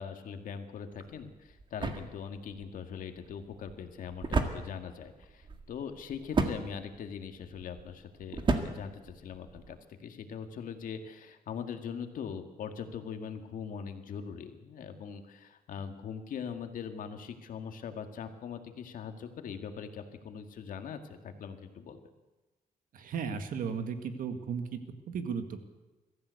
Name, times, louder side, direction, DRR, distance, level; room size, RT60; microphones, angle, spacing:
voice 1, 0.0-22.0, left 7 dB, 70° left, 6 dB, 1.9 m, -41 dB
sound 1, 0.9-9.8, right 4 dB, 35° right, 1.7 m, -35 dB
voice 2, 22.9-24.8 25.1-25.6, right 6 dB, 70° right, 8 dB, 1.9 m, -35 dB
23.0 x 14.5 x 8.2 m, 1.1 s
cardioid pair, 155°, 15 cm